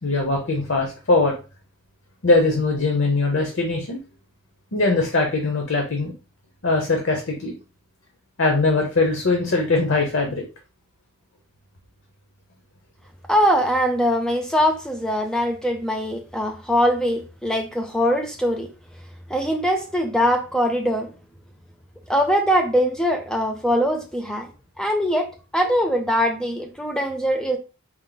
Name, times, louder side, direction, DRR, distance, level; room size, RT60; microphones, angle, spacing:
voice 1, 0.0-1.3 2.2-4.0 4.7-6.1 6.6-7.5 8.4-10.4, left 3 dB, 60° left, 2 dB, 0.7 m, -21 dB
voice 2, 13.3-18.7 19.3-21.1 22.1-24.5 24.8-27.6, equal, 5° left, 4 dB, 0.5 m, -22 dB
4.5 x 2.0 x 3.9 m, 0.33 s
head